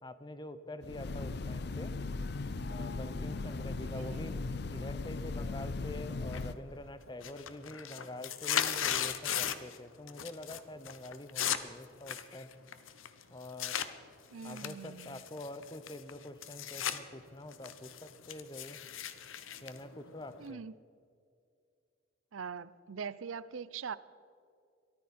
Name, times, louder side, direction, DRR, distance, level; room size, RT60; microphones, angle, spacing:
voice 1, 0.0-1.9 2.7-12.5 13.3-13.8 14.4-18.8 19.6-20.6, left 1 dB, 20° left, 0.8 m, -46 dB
Train, 0.8-6.5, left 3 dB, 55° left, 0.6 m, -38 dB
voice 2, 3.9-4.4 14.3-15.2 20.4-20.7 22.3-24.0, right 6 dB, 90° right, 0.6 m, -42 dB
sound 1, 6.3-6.8 7.1-9.8 10.1-10.6 10.9-13.9 14.4-17.0 17.3-20.5, left 9 dB, 85° left, 0.9 m, -37 dB
22.5 x 14.0 x 4.3 m
head